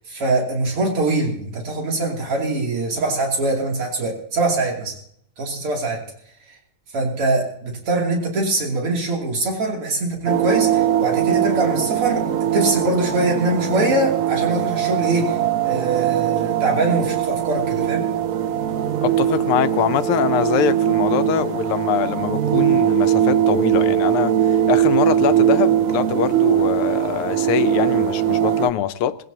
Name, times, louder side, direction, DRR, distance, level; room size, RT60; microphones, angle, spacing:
voice 1, 0.1-4.9 5.4-6.0 6.9-12.2 12.5-15.4 15.6-18.0, right 2 dB, 90° right, 3.9 m, -23 dB
sound 1, 10.3-28.7, right 10 dB, 65° right, 0.8 m, -20 dB
voice 2, 19.0-29.2, left 10 dB, 90° left, 1.6 m, -23 dB
20.0 x 16.5 x 2.8 m
omnidirectional pair, 2.4 m